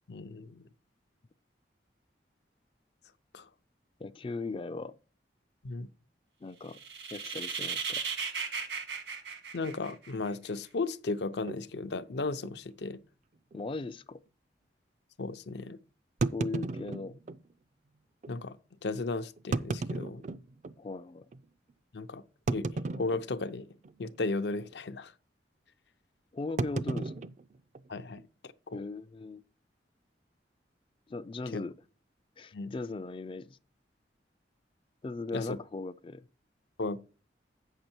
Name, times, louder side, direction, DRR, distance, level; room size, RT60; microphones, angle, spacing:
voice 1, 0.1-0.7 3.3-3.5 5.6-5.9 9.5-13.0 15.2-15.8 18.3-18.6 18.8-20.2 21.9-22.2 22.5-23.7 24.0-25.1 27.9-28.8 31.5-31.6 32.5-32.7 35.3-35.6 36.8-37.0, left 3 dB, 70° left, 0.6 m, -35 dB
voice 2, 4.0-4.9 6.4-6.8 7.1-8.0 13.5-14.2 16.3-17.2 20.8-21.3 26.3-27.2 28.7-29.4 31.1-31.7 32.4-33.6 35.0-36.3, left 3 dB, 30° left, 0.3 m, -38 dB
sound 1, 6.7-10.3, right 6 dB, 80° right, 1.5 m, -36 dB
sound 2, 11.5-11.6 12.4-12.5 12.8-12.9 13.5-13.6 16.2-17.4 18.2-18.3 19.4-20.8 21.3-21.4 22.5-23.6 23.8-24.2 24.4-24.8 26.6-28.2, right 3 dB, 40° right, 0.4 m, -34 dB
8.7 x 6.6 x 4.4 m
head